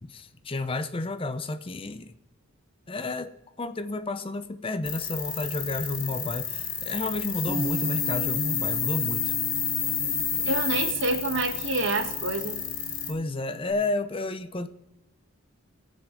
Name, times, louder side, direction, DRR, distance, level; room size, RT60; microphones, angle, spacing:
voice 1, 0.0-2.1 2.9-3.3 3.6-9.3 13.1-14.7, left 2 dB, 25° left, 9 dB, 0.6 m, -31 dB
sound 1, 4.8-13.1, left 7 dB, 85° left, 2.2 m, -30 dB
Bass guitar, 7.5-13.7, equal, 10° right, 1.6 m, -38 dB
voice 2, 10.4-12.6, right 2 dB, 60° right, 7 dB, 1.2 m, -27 dB
20.5 x 7.3 x 3.8 m, 1.0 s
head